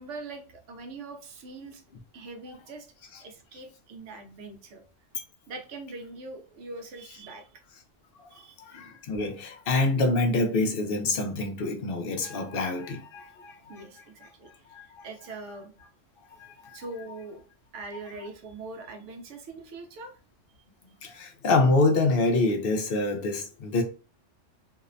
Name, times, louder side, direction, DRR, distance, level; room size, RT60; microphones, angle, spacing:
voice 1, 0.0-1.8 2.1-2.9 3.2-4.8 5.5-7.5 8.3-8.6 13.7-15.7 16.7-17.4 17.7-20.1, right 3 dB, 75° right, 0.9 m, -42 dB
voice 2, 8.6-13.8 14.7-15.0 16.4-16.8 21.0-23.8, left 2 dB, 60° left, 0.7 m, -26 dB
2.7 x 2.0 x 2.4 m
omnidirectional pair, 1.3 m